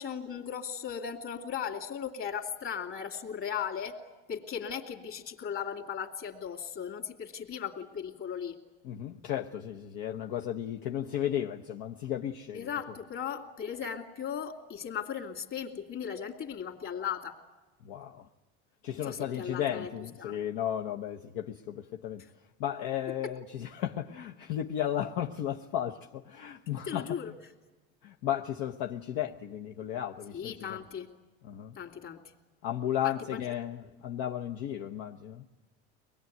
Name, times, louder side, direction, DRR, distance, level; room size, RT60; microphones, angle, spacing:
voice 1, 0.0-4.0 4.3-8.6 12.5-17.4 19.0-19.9 20.2-20.4 23.2-23.3 26.8-27.3 30.3-31.1 31.7-32.2 33.0-33.4, left 8 dB, 40° left, 2.7 m, -37 dB
voice 2, 8.8-12.7 17.8-18.3 18.8-22.2 22.6-27.3 28.0-30.8 31.4-31.8 32.6-35.5, left 10 dB, 70° left, 1.0 m, -34 dB
24.0 x 20.5 x 9.3 m
supercardioid pair, 105°, 33 cm